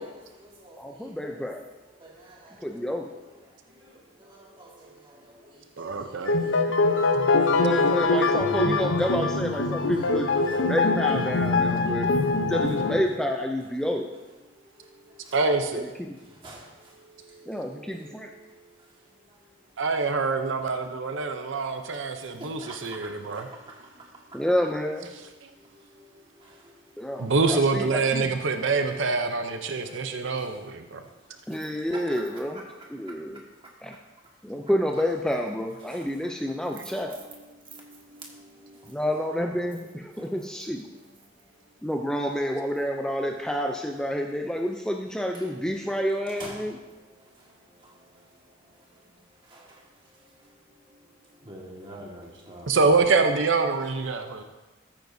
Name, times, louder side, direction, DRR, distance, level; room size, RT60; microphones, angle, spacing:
voice 1, 0.0-1.5 1.7-7.7 8.2-8.3 8.8-9.2 9.5-10.8 11.6-12.2 14.4-15.4 16.1-19.7 21.9-24.4 25.5-27.3 28.5-28.6 29.8-30.5 30.9-31.2 31.5-33.7 35.8-36.1 36.5-39.0 39.6-41.8 45.3-45.5 46.3-52.8, right 1 dB, 25° right, 1.7 m, -49 dB
voice 2, 0.8-1.6 2.6-3.1 6.4-6.6 7.5-10.3 10.6-12.1 12.5-14.1 16.0-16.2 17.5-18.3 24.3-25.1 27.0-27.8 28.1-28.2 31.5-32.6 32.9-33.4 33.8-33.9 34.4-37.2 38.9-40.8 41.8-46.8, equal, 5° left, 0.4 m, -29 dB
voice 3, 5.8-6.4 15.3-15.8 19.8-23.5 25.4-25.5 27.2-31.0 52.7-54.4, right 4 dB, 70° right, 0.6 m, -25 dB
sound 1, 6.3-13.0, left 3 dB, 70° left, 0.7 m, -23 dB
14.0 x 9.1 x 2.7 m
head